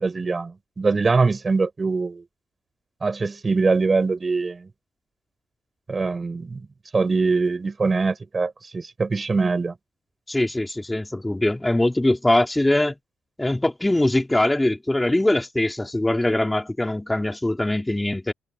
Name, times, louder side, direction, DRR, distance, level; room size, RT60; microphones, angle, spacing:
voice 1, 0.0-2.2 3.0-4.7 5.9-6.7 6.9-9.7, right 4 dB, 30° right, 4.6 m, -23 dB
voice 2, 10.3-13.0 13.4-18.3, left 1 dB, 10° left, 3.5 m, -22 dB
supercardioid pair, 70°, 0 cm